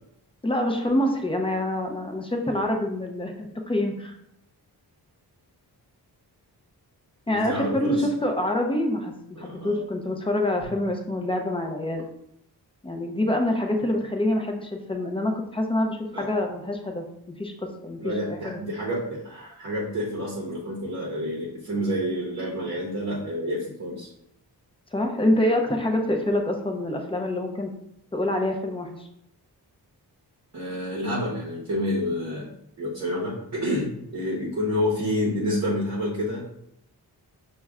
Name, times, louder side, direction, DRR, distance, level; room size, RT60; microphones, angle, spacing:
voice 1, 0.4-4.1 7.3-12.0 12.8-17.0 17.4-18.1 18.4-18.6 24.9-27.7 28.1-29.0, left 1 dB, 15° left, 3 dB, 0.4 m, -26 dB
voice 2, 7.3-8.1 9.4-9.8 16.1-16.3 18.0-24.1 30.5-36.4, equal, 45° right, -3 dB, 0.8 m, -29 dB
5.8 x 2.2 x 3.5 m, 0.78 s
wide cardioid pair, 170°, 39 cm